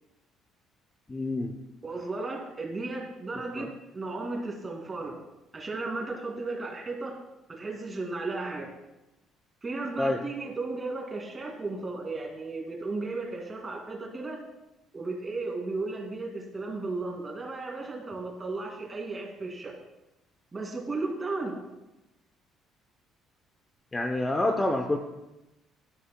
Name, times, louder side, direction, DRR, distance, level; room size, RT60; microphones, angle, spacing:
voice 1, 1.1-1.5 3.6-3.7 10.0-10.2 23.9-25.0, left 1 dB, 15° left, 3 dB, 0.7 m, -27 dB
voice 2, 1.8-5.2 5.5-7.2 7.5-8.7 9.6-14.4 14.9-19.7 20.5-21.6, right 3 dB, 20° right, 0 dB, 2.3 m, -35 dB
18.0 x 11.5 x 2.2 m, 0.97 s
cardioid pair, 160°, 0 cm